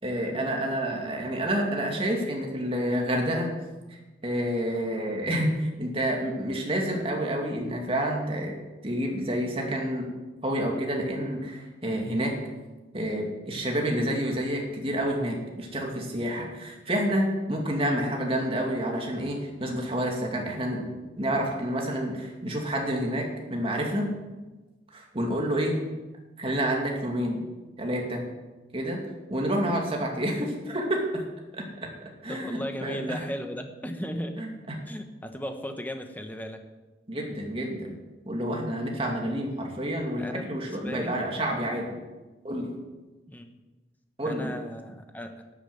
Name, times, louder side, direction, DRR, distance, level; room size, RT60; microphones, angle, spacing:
voice 1, 0.0-3.5 4.2-8.5 8.8-10.1 10.4-12.4 12.9-20.9 21.2-24.1 24.9-25.8 26.4-27.4 27.8-28.2 28.7-29.0 29.3-31.2 31.5-31.6 32.2-33.0 34.4-34.5 37.1-37.9 38.2-42.0 42.4-42.7 44.2-44.5, equal, 30° right, 0 dB, 2.5 m, -29 dB
voice 2, 32.3-34.4 34.9-36.6 40.2-41.2 43.3-43.5 44.2-45.4, equal, 10° left, 6 dB, 1.0 m, -36 dB
12.5 x 8.7 x 7.9 m, 1.2 s
head